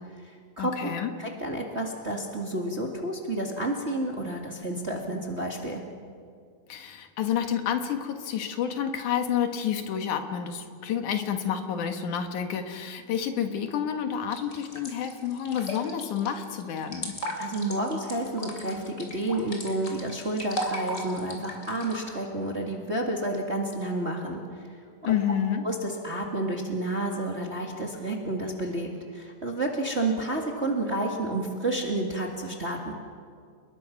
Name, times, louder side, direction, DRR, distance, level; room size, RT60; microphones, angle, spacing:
voice 1, 0.1-0.9 1.2-5.8 17.4-24.8 25.0-25.2 25.6-32.9, right 1 dB, 25° right, 1 dB, 1.7 m, -30 dB
voice 2, 0.6-1.1 6.7-17.1 25.0-25.6, left 8 dB, 70° left, 6 dB, 2.8 m, -29 dB
sound 1, 14.3-22.0, equal, 25° left, 3.2 m, -37 dB
30.0 x 21.0 x 6.0 m, 2.1 s
omnidirectional pair, 3.8 m